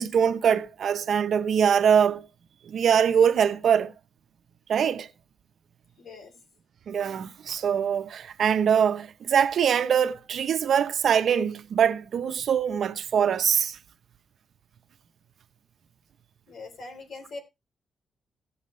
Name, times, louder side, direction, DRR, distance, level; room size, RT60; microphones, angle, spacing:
voice 1, 0.0-2.3 2.7-3.9 4.7-5.1 6.9-13.8, right 8 dB, 65° right, 0.8 m, -23 dB
voice 2, 6.0-6.3 16.5-17.4, left 3 dB, 70° left, 3.3 m, -41 dB
16.5 x 7.3 x 3.2 m
cardioid pair, 115°, 0 cm